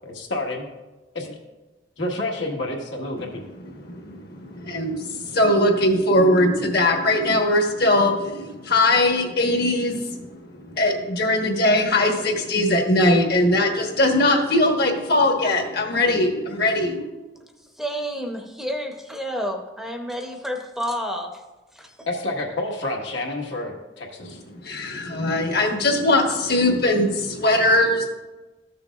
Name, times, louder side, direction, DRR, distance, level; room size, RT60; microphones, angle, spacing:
voice 1, 0.0-0.7 1.1-1.3 2.0-3.4 22.1-24.4, left 2 dB, 85° left, 0 dB, 1.5 m, -29 dB
voice 2, 3.7-4.2 4.7-5.0 5.3-17.1 24.6-28.0, left 1 dB, 60° left, 3 dB, 1.2 m, -20 dB
voice 3, 17.8-21.4 21.7-22.0, equal, ahead, 3 dB, 0.6 m, -30 dB
13.5 x 6.7 x 2.4 m, 1.1 s
head